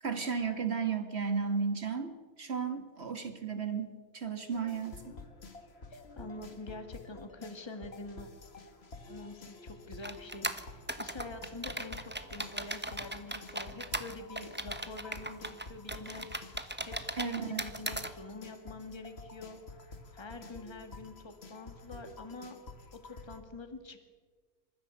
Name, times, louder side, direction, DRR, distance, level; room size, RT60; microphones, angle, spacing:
voice 1, 0.0-5.0 17.2-17.6, right 6 dB, 45° right, 7 dB, 2.3 m, -34 dB
sound 1, 4.5-23.4, left 3 dB, 45° left, 1.9 m, -50 dB
voice 2, 5.9-8.3 9.1-19.6 20.1-22.5 23.0-24.0, left 2 dB, 15° left, 6 dB, 2.0 m, -46 dB
sound 2, 10.0-18.1, right 1 dB, 10° right, 1.1 m, -38 dB
26.5 x 15.0 x 8.4 m, 1.5 s
omnidirectional pair, 1.6 m